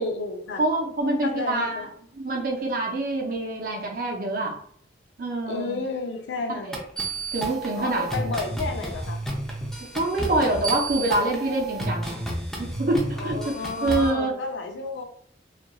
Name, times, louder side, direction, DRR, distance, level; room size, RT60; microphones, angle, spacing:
voice 1, 0.0-0.6 1.2-1.9 5.5-6.7 7.7-9.2 13.2-15.0, left 3 dB, 85° left, 0.5 m, -31 dB
voice 2, 0.6-1.9 2.1-4.6 5.2-5.8 6.7-6.8 7.3-8.1 9.9-12.2 12.6-14.3, right 2 dB, 50° right, 0.6 m, -26 dB
sound 1, 6.7-14.1, right 2 dB, 5° left, 0.4 m, -31 dB
3.0 x 2.4 x 2.2 m
head